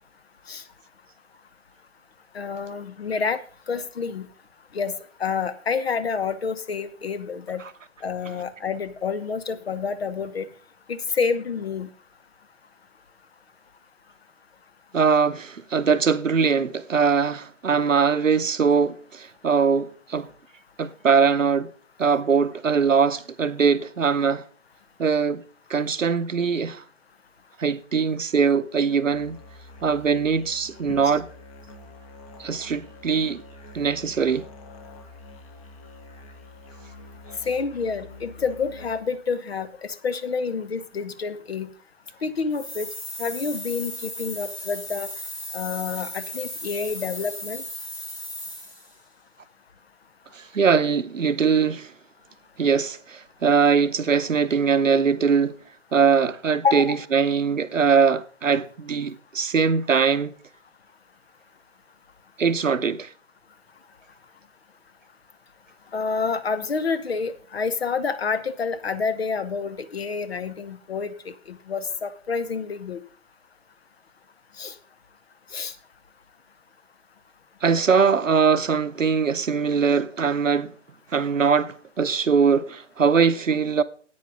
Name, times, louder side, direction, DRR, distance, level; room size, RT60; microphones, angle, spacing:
voice 1, 2.3-3.4 3.7-4.3 4.7-4.9 5.2-7.6 8.0-10.5 10.9-11.9 30.9-31.1 37.5-41.7 42.2-42.9 43.2-45.1 45.5-47.6 56.6-57.0 65.9-71.1 71.5-73.0 74.6-74.7 75.5-75.7, left 5 dB, 55° left, 1.0 m, -28 dB
voice 2, 14.9-20.3 20.8-21.7 22.0-24.4 25.0-25.4 25.7-26.8 27.6-29.4 29.8-31.3 32.4-33.4 33.7-34.5 50.3-51.9 52.6-55.6 55.9-60.3 62.4-63.1 77.6-80.7 81.1-83.8, right 6 dB, 80° right, 0.8 m, -21 dB
Musical instrument, 29.1-39.2, left 2 dB, 30° left, 1.3 m, -46 dB
sound 1, 42.5-48.9, left 1 dB, 10° left, 1.4 m, -36 dB
9.6 x 8.8 x 5.2 m
figure-of-eight pair, 135°, 38 cm